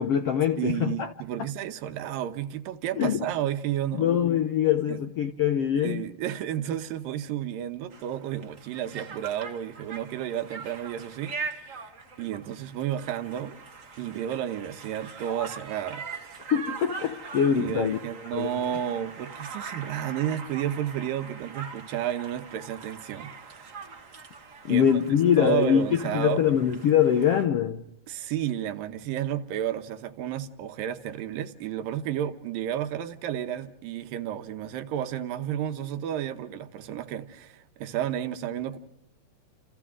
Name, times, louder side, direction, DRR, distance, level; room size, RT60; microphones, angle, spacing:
voice 1, 0.0-1.1 3.0-3.2 3.9-6.0 16.5-18.0 18.3-18.5 24.6-27.8, left 9 dB, 75° left, 1.4 m, -23 dB
voice 2, 0.6-4.1 4.9-5.0 5.8-11.9 12.2-13.6 14.0-16.0 17.6-23.9 24.7-24.9 25.4-26.5 28.1-38.8, right 11 dB, 80° right, 2.7 m, -32 dB
Conversation, 7.9-27.4, right 4 dB, 60° right, 0.8 m, -42 dB
29.5 x 28.0 x 3.7 m
omnidirectional pair, 4.0 m